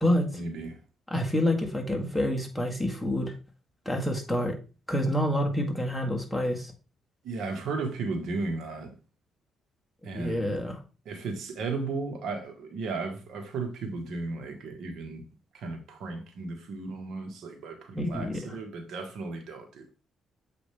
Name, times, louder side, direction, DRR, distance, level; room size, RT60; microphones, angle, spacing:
voice 1, 0.3-0.8 7.2-8.9 10.0-10.6 11.0-15.2 15.5-19.9, right 3 dB, 75° right, 1.5 m, -35 dB
voice 2, 1.1-3.3 3.9-4.5 4.9-6.7 10.1-10.8 18.0-18.5, left 1 dB, 5° left, 1.9 m, -27 dB
7.7 x 5.1 x 3.5 m
cardioid pair, 90°, 0 cm